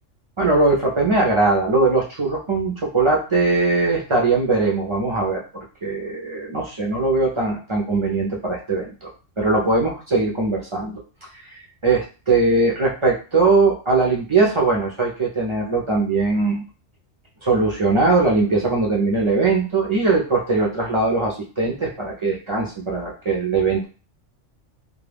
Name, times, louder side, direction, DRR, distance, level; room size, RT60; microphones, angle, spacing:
voice 1, 0.4-9.1 9.4-11.0 11.5-16.6 17.4-23.8, right 3 dB, 45° right, -3 dB, 0.4 m, -20 dB
2.3 x 2.2 x 3.3 m, 0.34 s
omnidirectional pair, 1.3 m